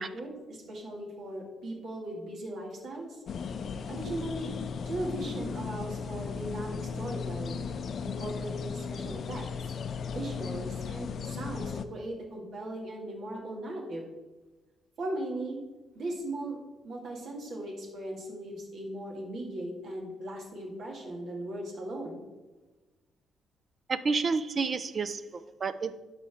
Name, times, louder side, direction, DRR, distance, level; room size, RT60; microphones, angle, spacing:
voice 1, 0.0-3.2 3.9-4.5 4.8-7.7 8.0-9.7 10.1-14.1 15.0-15.6 15.9-16.6 16.8-22.2, right 1 dB, 65° right, -1 dB, 2.2 m, -38 dB
sound 1, 3.3-11.8, left 6 dB, 55° left, 0.4 m, -36 dB
voice 2, 23.9-26.0, right 4 dB, 40° right, 13 dB, 0.5 m, -30 dB
12.0 x 4.1 x 3.5 m, 1.2 s
cardioid pair, 90°, 0 cm